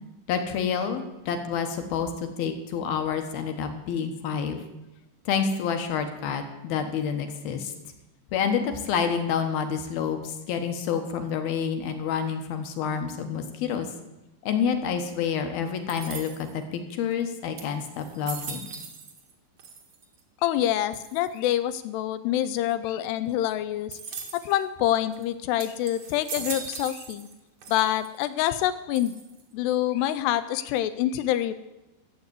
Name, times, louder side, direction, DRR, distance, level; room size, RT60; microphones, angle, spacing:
voice 1, 0.3-4.6 5.3-7.7 8.3-13.9 14.4-18.7, left 7 dB, 65° left, 6 dB, 2.7 m, -28 dB
sound 1, 15.9-16.6 17.2-17.3 17.6-19.3 19.6-20.2 20.9-21.4 23.9-24.6 25.1-25.2 25.6-27.4 27.6-28.2 29.0-29.5, right 5 dB, 60° right, 1.6 m, -39 dB
voice 2, 20.4-24.0 24.3-27.3 27.7-29.2 29.5-31.5, left 12 dB, 85° left, 13 dB, 2.4 m, -26 dB
14.5 x 8.2 x 8.1 m, 0.98 s
omnidirectional pair, 5.3 m